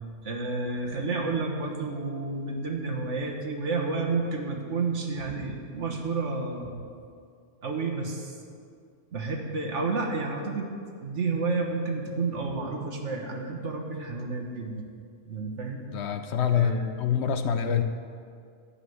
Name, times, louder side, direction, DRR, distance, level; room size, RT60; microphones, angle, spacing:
voice 1, 0.2-6.7 7.6-8.4 9.1-10.7 11.0-14.9 15.3-15.8 16.5-16.9, right 3 dB, 70° right, 0 dB, 1.7 m, -30 dB
voice 2, 15.9-17.8, left 8 dB, 65° left, 9 dB, 0.8 m, -26 dB
11.5 x 5.7 x 7.9 m, 2.2 s
omnidirectional pair, 1.3 m